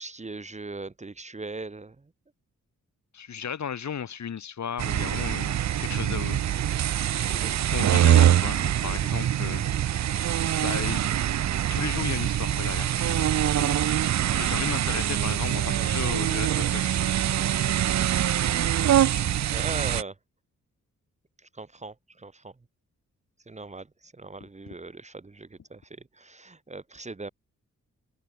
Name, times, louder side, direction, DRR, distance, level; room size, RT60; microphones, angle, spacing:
voice 1, 0.0-2.1 7.3-7.6 15.8-15.9 19.5-20.2 21.5-22.5 23.5-27.3, right 3 dB, 20° right, 2.3 m, -40 dB
voice 2, 3.1-6.5 7.4-9.6 10.1-11.1 11.7-13.8 14.4-17.0 24.4-24.5, left 7 dB, 65° left, 6.2 m, -35 dB
sound 1, 4.8-20.0, right 11 dB, 65° right, 0.7 m, -24 dB
wide cardioid pair, 135°, 30 cm